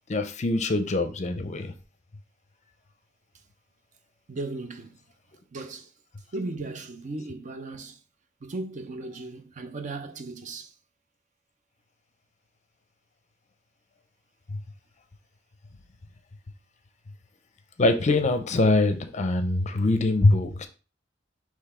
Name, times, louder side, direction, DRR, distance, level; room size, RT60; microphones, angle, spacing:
voice 1, 0.1-1.7 14.5-14.6 17.8-20.7, left 2 dB, 40° left, 0.5 m, -23 dB
voice 2, 4.3-5.0 5.5-5.9 6.3-8.0 8.4-10.7, right 2 dB, 40° right, 0.5 m, -36 dB
4.0 x 3.0 x 4.2 m
head